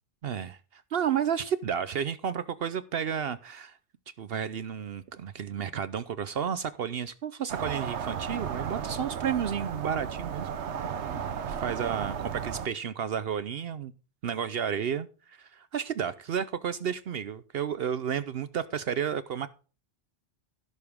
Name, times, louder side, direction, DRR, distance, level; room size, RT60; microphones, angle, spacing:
voice 1, 0.2-3.8 4.2-10.5 11.5-13.9 14.2-19.5, right 8 dB, 65° right, 0.8 m, -32 dB
sound 1, 7.5-12.7, right 7 dB, 85° right, 1.1 m, -34 dB
16.0 x 6.7 x 3.5 m
omnidirectional pair, 1.1 m